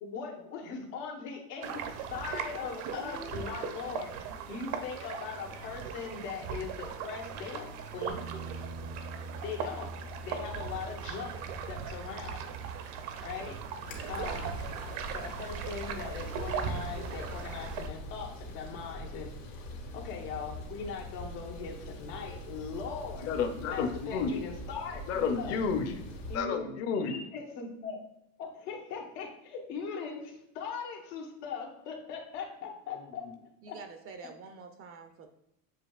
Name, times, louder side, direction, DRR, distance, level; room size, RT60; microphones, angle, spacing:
voice 1, 0.0-4.1 4.5-8.2 9.4-9.9 10.2-11.3 11.6-12.4 13.2-13.6 14.1-14.7 15.1-19.3 19.9-23.3 23.7-25.6 26.3-26.7 27.1-28.0 28.4-33.2 33.7-33.8, left 5 dB, 85° left, 1 dB, 1.3 m, -40 dB
sound 1, 1.6-17.9, right 7 dB, 65° right, 0.7 m, -39 dB
voice 2, 2.9-3.6 33.6-35.3, right 4 dB, 35° right, 6 dB, 0.4 m, -46 dB
Bass guitar, 8.1-12.9 13.1-14.3, right 2 dB, 85° right, 1.3 m, -45 dB
sound 2, 13.8-26.4, left 1 dB, 65° left, 1.6 m, -43 dB
voice 3, 23.3-24.4 25.1-26.0 26.3-27.2 33.2-33.4, left 5 dB, 35° left, 6 dB, 0.6 m, -31 dB
7.3 x 2.8 x 2.3 m, 0.82 s
supercardioid pair, 125°, 45 cm